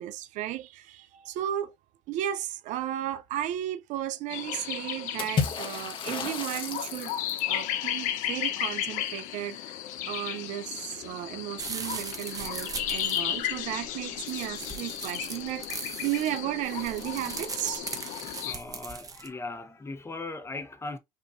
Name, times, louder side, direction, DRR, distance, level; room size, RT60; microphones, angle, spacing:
voice 1, 0.0-1.7 2.1-7.2 7.5-9.8 10.1-17.9, right 12 dB, 65° right, 0.5 m, -34 dB
sound 1, 4.3-18.5, left 11 dB, 70° left, 0.8 m, -34 dB
Water / Splash splatter, 5.2-7.6, left 5 dB, 40° left, 1.1 m, -32 dB
sound 2, 11.6-19.3, right 4 dB, 25° right, 1.0 m, -39 dB
voice 2, 18.4-21.0, left 3 dB, 20° left, 0.9 m, -38 dB
5.5 x 2.8 x 2.6 m
supercardioid pair, 90°, 14 cm